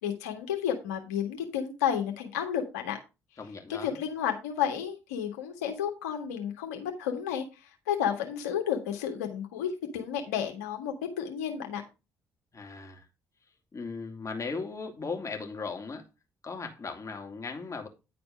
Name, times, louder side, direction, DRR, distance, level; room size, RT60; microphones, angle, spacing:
voice 1, 0.0-3.0 3.7-11.8, left 9 dB, 85° left, 1.7 m, -32 dB
voice 2, 3.4-4.0 12.5-13.1 13.7-16.1 16.4-17.9, left 4 dB, 40° left, 2.6 m, -37 dB
10.5 x 4.3 x 5.3 m
hypercardioid pair, 45°, 8 cm